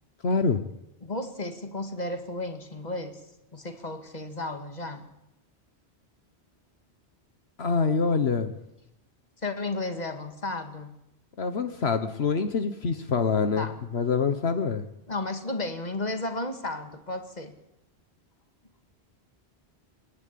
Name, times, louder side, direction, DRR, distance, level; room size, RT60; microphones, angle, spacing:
voice 1, 0.2-0.6 7.6-8.5 11.4-13.7 13.9-14.8, left 5 dB, 75° left, 8 dB, 1.5 m, -25 dB
voice 2, 1.0-3.2 3.5-5.1 9.4-11.0 13.6-13.8 15.1-17.6, left 2 dB, 40° left, 6 dB, 2.3 m, -33 dB
28.5 x 11.5 x 8.6 m, 0.88 s
omnidirectional pair, 1.1 m